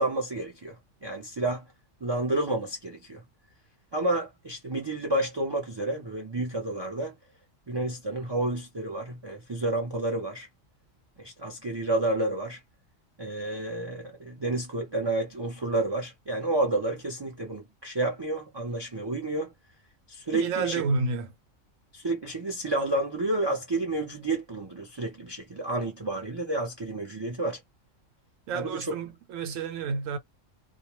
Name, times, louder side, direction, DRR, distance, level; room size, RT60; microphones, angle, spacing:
voice 1, 0.0-1.6 2.0-3.2 3.9-7.1 7.7-10.5 11.2-12.6 13.2-19.5 20.1-20.8 21.9-27.6 28.5-28.9, right 2 dB, 35° right, 0.4 m, -30 dB
voice 2, 20.3-21.3 28.5-30.2, right 4 dB, 80° right, 1.0 m, -30 dB
2.3 x 2.2 x 2.9 m
omnidirectional pair, 1.3 m